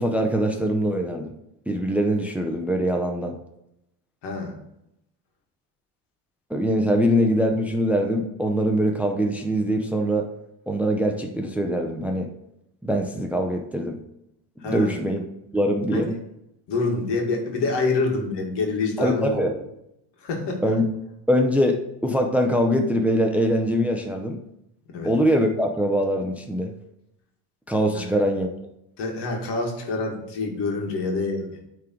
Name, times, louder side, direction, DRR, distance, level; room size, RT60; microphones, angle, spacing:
voice 1, 0.0-1.3 1.7-3.4 6.5-10.3 10.7-12.3 12.8-14.0 14.6-15.2 15.5-16.2 19.0-19.5 20.6-20.8 21.3-24.4 25.0-26.7 27.7-28.5, equal, 5° right, 3 dB, 0.5 m, -23 dB
voice 2, 4.2-4.5 14.6-14.9 15.9-16.0 16.7-19.5 20.2-20.6 24.9-25.1 27.9-28.0 29.0-31.6, left 3 dB, 70° left, 1 dB, 2.1 m, -26 dB
9.2 x 3.9 x 4.6 m, 0.83 s
cardioid pair, 140°, 43 cm